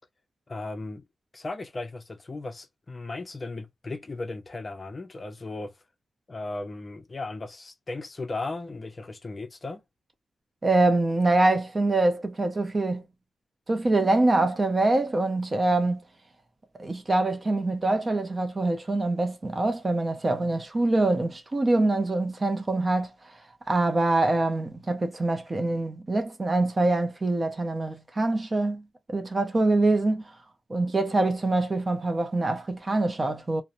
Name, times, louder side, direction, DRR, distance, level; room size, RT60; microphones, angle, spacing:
voice 1, 0.5-1.0 1.3-5.7 6.3-9.8, left 2 dB, 30° left, 0.5 m, -36 dB
voice 2, 10.6-13.0 13.7-16.0 16.8-23.4 23.7-28.8 29.1-30.2 30.7-33.6, right 2 dB, 25° right, 0.4 m, -24 dB
2.5 x 2.0 x 2.7 m
wide cardioid pair, 130°, 0 cm